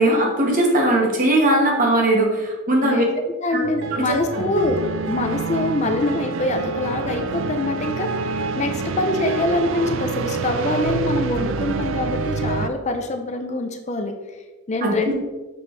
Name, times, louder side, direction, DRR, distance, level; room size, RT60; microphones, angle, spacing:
voice 1, 0.0-3.0 3.5-4.5 14.8-15.1, right 1 dB, 40° right, 0 dB, 1.4 m, -20 dB
voice 2, 3.4-14.1 14.7-15.1, left 2 dB, 35° left, 6 dB, 0.5 m, -24 dB
sound 1, 3.6-12.7, right 4 dB, 75° right, 0.4 m, -27 dB
6.8 x 5.4 x 3.3 m, 1.2 s
head